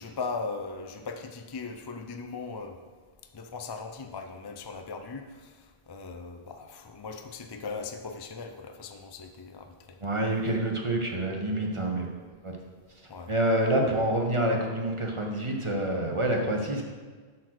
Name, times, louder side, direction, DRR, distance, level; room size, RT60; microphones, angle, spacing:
voice 1, 0.0-2.8 3.3-10.0 13.1-13.3, left 4 dB, 40° left, 6 dB, 0.3 m, -39 dB
voice 2, 10.0-12.1 12.4-12.5 13.3-16.8, right 1 dB, 30° right, 1 dB, 1.0 m, -27 dB
8.1 x 4.4 x 6.3 m, 1.5 s
omnidirectional pair, 1.1 m